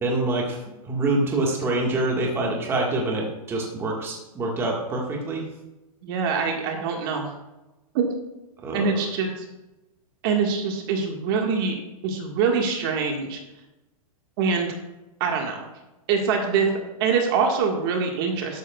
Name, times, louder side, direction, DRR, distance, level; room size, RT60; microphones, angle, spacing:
voice 1, 0.0-0.6 0.8-5.4 8.6-9.0, right 2 dB, 15° right, -1 dB, 1.6 m, -25 dB
voice 2, 6.0-7.3 7.9-8.1 8.7-9.5 10.2-11.8 12.0-13.4 14.4-14.7 15.2-15.6 16.1-16.7 17.0-18.6, right 5 dB, 35° right, 2 dB, 1.6 m, -24 dB
12.5 x 12.0 x 2.3 m, 1.0 s
hypercardioid pair, 155°, 19 cm